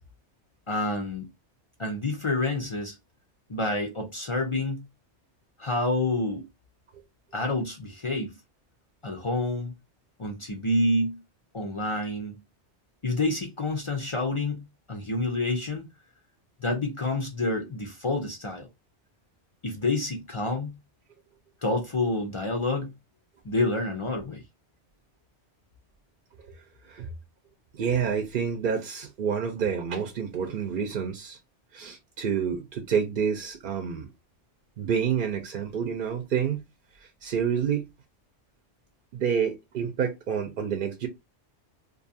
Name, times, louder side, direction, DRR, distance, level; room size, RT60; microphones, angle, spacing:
voice 1, 0.7-1.3 1.8-3.0 3.5-4.8 5.6-6.5 7.3-8.3 9.0-9.7 10.2-11.2 11.5-12.4 13.0-15.9 16.6-18.7 19.6-20.8 21.6-22.9 23.4-24.4, left 2 dB, 45° left, 0.4 m, -28 dB
voice 2, 26.5-27.1 27.7-31.4 31.7-34.1 34.8-36.6 37.2-37.9 39.1-41.1, right 7 dB, 55° right, 0.6 m, -28 dB
2.6 x 2.3 x 2.6 m
omnidirectional pair, 1.2 m